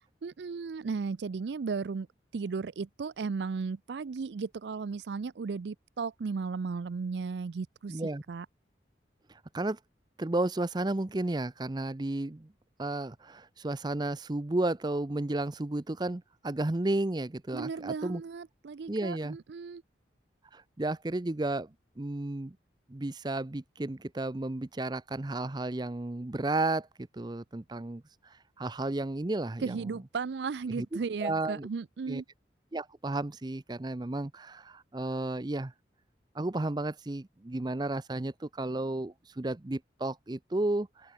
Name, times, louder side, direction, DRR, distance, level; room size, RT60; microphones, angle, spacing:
voice 1, 0.2-2.1 2.3-8.0 8.3-8.5 17.5-19.8 29.6-32.2, right 5 dB, 70° right, 0.4 m, -35 dB
voice 2, 7.9-8.2 9.3-9.8 10.2-12.5 12.8-18.2 18.9-19.4 20.5-22.6 22.9-26.9 27.1-30.0 30.7-31.7 32.1-32.2 32.7-35.7 36.3-41.1, right 2 dB, 25° right, 0.6 m, -33 dB
open air
head